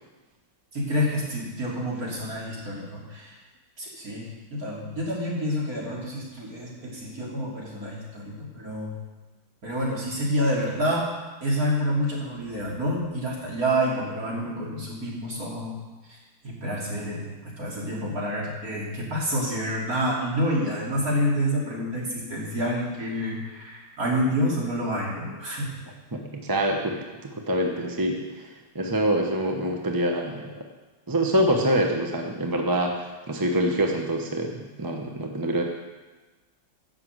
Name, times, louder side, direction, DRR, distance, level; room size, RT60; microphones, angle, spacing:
voice 1, 0.7-3.3 3.8-8.9 9.6-11.1 11.4-15.8 16.1-16.2 16.4-25.7, equal, 50° right, -4 dB, 3.4 m, -28 dB
voice 2, 26.1-28.5 28.7-30.5 31.1-35.6, right 1 dB, 15° right, 2 dB, 0.8 m, -25 dB
11.0 x 6.9 x 7.9 m, 1.2 s
omnidirectional pair, 1.9 m